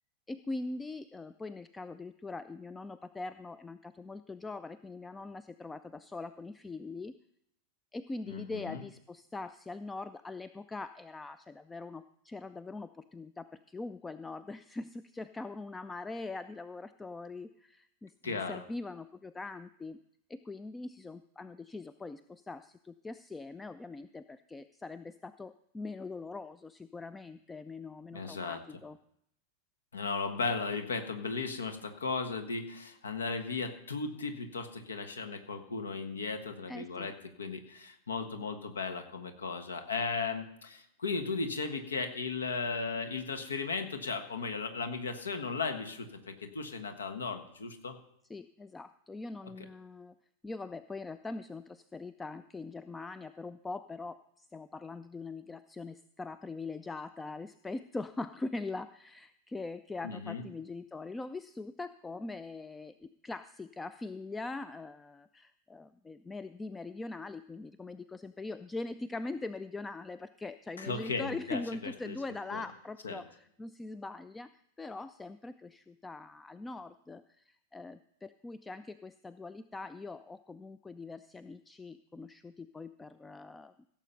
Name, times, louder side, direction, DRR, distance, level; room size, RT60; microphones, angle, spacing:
voice 1, 0.3-7.1 7.9-20.0 20.3-29.0 36.7-37.1 48.3-50.1 50.4-83.7, left 3 dB, 10° left, 14 dB, 0.4 m, -42 dB
voice 2, 8.3-8.8 18.2-18.6 28.1-28.6 29.9-48.0 60.0-60.4 70.8-72.2 72.5-72.6 73.0-73.2, left 4 dB, 70° left, 8 dB, 1.4 m, -36 dB
16.5 x 7.4 x 5.5 m, 0.74 s
figure-of-eight pair, 90°, 0 cm